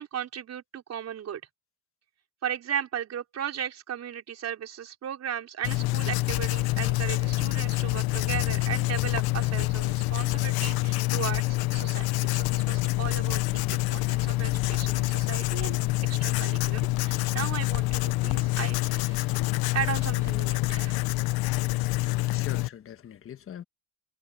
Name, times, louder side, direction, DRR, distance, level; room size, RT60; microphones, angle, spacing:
voice 1, 0.0-1.4 2.4-15.8 16.0-19.3 19.7-21.0, right 9 dB, 40° right, 5.1 m, -36 dB
Writing, 5.6-22.7, left 21 dB, 60° left, 0.9 m, -26 dB
voice 2, 22.1-23.6, left 9 dB, 30° left, 1.5 m, -42 dB
cardioid pair, 130°, 41 cm